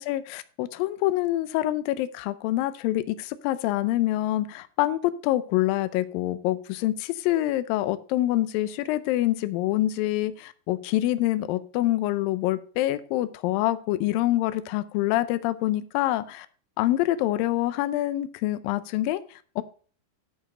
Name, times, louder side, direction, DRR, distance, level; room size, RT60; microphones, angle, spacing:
voice 1, 0.0-16.5 16.8-19.6, left 15 dB, 80° left, 13 dB, 2.2 m, -26 dB
11.0 x 5.1 x 5.3 m, 0.41 s
omnidirectional pair, 4.5 m